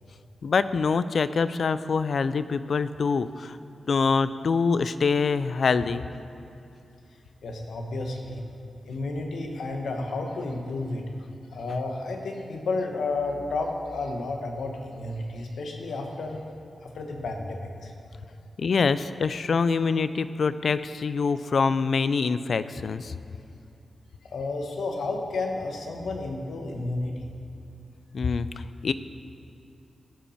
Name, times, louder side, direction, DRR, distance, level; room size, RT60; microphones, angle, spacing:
voice 1, 0.4-3.6 3.9-6.1 18.6-23.1 28.1-28.9, left 5 dB, 60° left, 14 dB, 0.3 m, -25 dB
voice 2, 7.4-8.4 8.8-11.1 11.5-16.4 16.8-18.1 24.2-27.3, left 2 dB, 90° left, 2 dB, 1.1 m, -31 dB
16.5 x 5.7 x 4.3 m, 2.6 s
wide cardioid pair, 130°, 0 cm